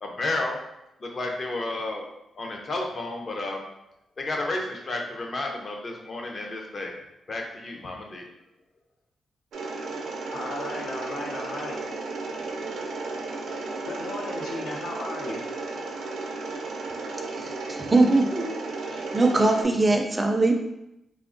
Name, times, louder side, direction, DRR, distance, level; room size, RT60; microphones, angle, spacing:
voice 1, 0.0-0.6 1.0-2.0 2.3-3.7 4.2-6.9 7.3-8.2, left 2 dB, 45° left, 1 dB, 0.5 m, -31 dB
Mechanisms, 9.5-19.6, right 3 dB, 85° right, 0.5 m, -34 dB
voice 2, 10.3-11.8 13.8-15.4, left 2 dB, 85° left, -2 dB, 0.7 m, -35 dB
voice 3, 17.4-18.5 18.9-20.6, right 2 dB, 20° right, 3 dB, 0.3 m, -22 dB
3.5 x 2.0 x 2.5 m, 0.87 s
cardioid pair, 90°, 0 cm